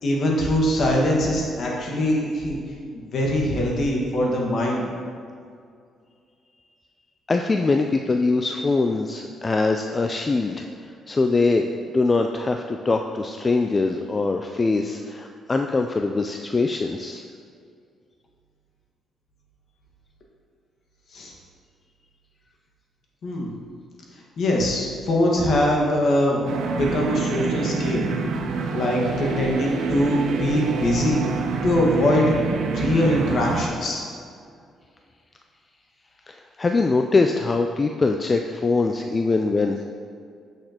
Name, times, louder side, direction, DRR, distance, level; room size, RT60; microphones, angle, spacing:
voice 1, 0.0-2.6 2.9-4.9 21.1-21.3 23.2-23.5 24.4-26.4 26.7-28.1 28.7-31.2 31.6-32.3 32.7-34.0, left 1 dB, 60° left, -2 dB, 1.6 m, -22 dB
voice 2, 7.3-10.7 11.1-11.7 11.9-17.2 36.3-39.8, left 3 dB, 30° left, 4 dB, 0.3 m, -22 dB
sound 1, 26.5-33.7, right 5 dB, 80° right, 0.5 m, -27 dB
7.9 x 6.5 x 2.9 m, 2.3 s
cardioid pair, 90°, 0 cm